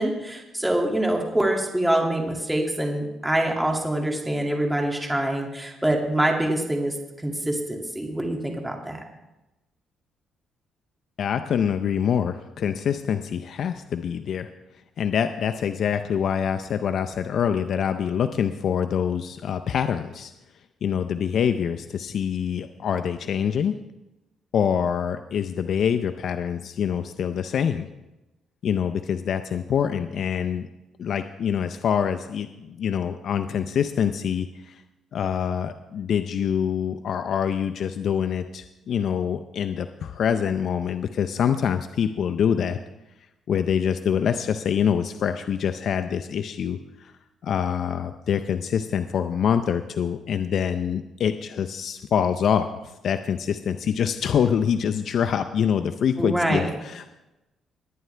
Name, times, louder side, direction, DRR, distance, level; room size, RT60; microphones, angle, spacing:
voice 1, 0.0-9.0 56.2-56.7, right 1 dB, 10° right, 1 dB, 2.3 m, -25 dB
voice 2, 11.2-14.5 15.0-20.3 20.8-23.8 24.5-27.9 28.6-30.7 31.0-34.8 35.1-42.8 43.5-47.1 47.4-57.1, left 8 dB, 65° left, 9 dB, 0.5 m, -25 dB
20.5 x 9.1 x 3.3 m, 0.99 s
cardioid pair, 90°, 0 cm